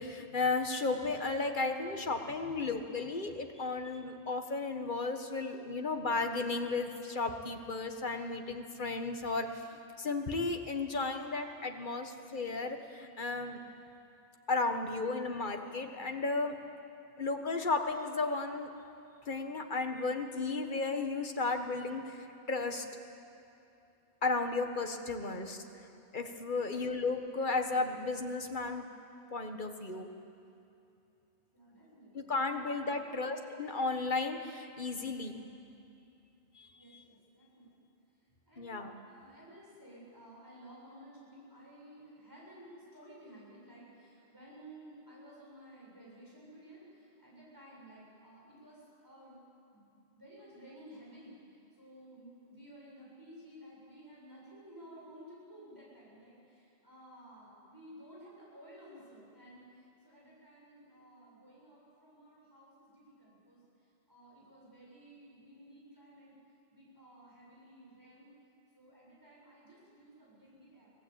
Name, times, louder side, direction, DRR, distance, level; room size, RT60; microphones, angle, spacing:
voice 1, 0.0-9.6 10.0-13.6 14.5-16.6 17.2-18.7 19.3-22.8 24.2-25.6 26.1-28.8 29.3-30.1 32.1-35.4 36.6-36.7 36.9-37.0 38.6-38.9, left 3 dB, 45° left, 5 dB, 1.7 m, -34 dB
voice 2, 26.5-26.8 31.5-32.3 32.9-33.2 36.7-37.9 38.5-38.8 39.1-49.4 49.7-51.3 51.8-63.6 64.1-66.4 66.7-68.3 68.8-70.9, right 1 dB, 15° right, -6 dB, 7.7 m, -55 dB
24.5 x 17.5 x 8.9 m, 2.6 s
omnidirectional pair, 1.2 m